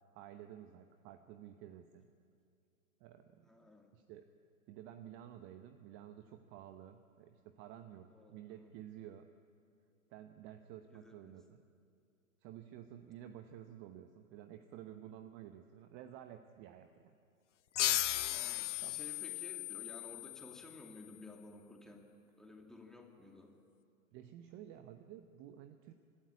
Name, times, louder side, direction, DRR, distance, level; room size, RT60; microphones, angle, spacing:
voice 1, 0.1-2.1 3.0-3.5 3.9-4.3 4.7-9.3 10.1-11.6 12.4-17.1 18.8-19.0 24.1-25.9, right 11 dB, 30° right, 9 dB, 0.9 m, -52 dB
voice 2, 3.4-3.9 8.0-8.7 10.9-11.3 18.2-22.0 22.4-23.5, left 2 dB, ahead, 1 dB, 2.5 m, -55 dB
sound 1, 17.8-21.0, left 13 dB, 60° left, 0.8 m, -36 dB
25.5 x 13.0 x 9.7 m, 2.4 s
figure-of-eight pair, 110°, 42 cm